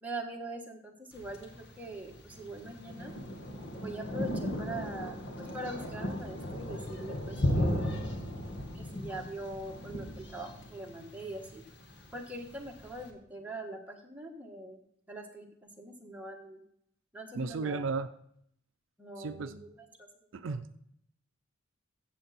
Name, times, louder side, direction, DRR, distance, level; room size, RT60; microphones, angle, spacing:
voice 1, 0.0-3.1 3.8-8.1 8.7-11.6 12.1-14.8 15.1-15.5 15.8-16.6 17.1-17.8 19.0-20.1 20.4-20.6, right 1 dB, 10° right, 0 dB, 1.5 m, -42 dB
Thunder, 1.1-13.1, left 1 dB, 60° left, 1.8 m, -36 dB
voice 2, 17.3-18.1 19.2-19.6 20.3-20.7, right 4 dB, 70° right, 11 dB, 0.5 m, -34 dB
14.5 x 7.7 x 4.2 m, 0.71 s
head